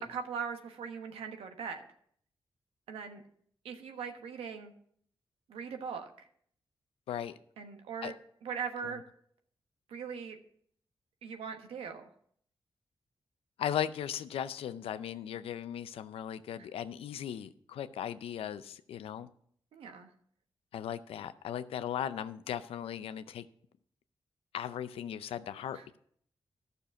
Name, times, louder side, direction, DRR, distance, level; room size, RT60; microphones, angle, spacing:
voice 1, 0.1-1.9 2.9-3.2 3.6-4.7 5.5-6.3 7.6-8.2 8.4-9.0 9.9-10.4 11.2-12.1 16.6-16.7 19.7-20.1 25.7-25.9, right 6 dB, 90° right, 5 dB, 1.2 m, -40 dB
voice 2, 7.1-7.4 8.0-8.1 8.8-8.9 13.6-19.3 20.7-23.5 24.5-26.0, left 10 dB, 90° left, 13 dB, 0.5 m, -37 dB
12.5 x 6.7 x 5.9 m, 0.63 s
cardioid pair, 50°, 9 cm